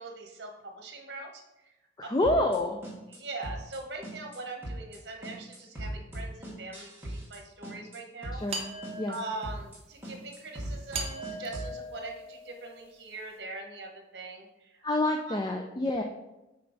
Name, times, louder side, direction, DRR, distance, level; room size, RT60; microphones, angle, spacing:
voice 1, 0.0-1.4 3.1-8.4 8.8-14.8 15.3-15.7, right 3 dB, 65° right, 3 dB, 1.0 m, -42 dB
voice 2, 2.0-2.8 8.3-8.6 9.0-9.2 14.8-16.0, left 1 dB, 20° left, 3 dB, 0.3 m, -27 dB
sound 1, 2.2-2.6 2.8-3.2 3.4-4.4 4.6-5.0 5.2-7.4 7.6-8.0 8.2-8.6 8.8-9.2 9.4-9.8 10.0-11.7, right 1 dB, 10° right, 1.6 m, -38 dB
sound 2, 8.5-9.6 10.9-12.8, right 2 dB, 35° right, 0.9 m, -39 dB
5.4 x 4.4 x 3.9 m, 0.96 s
head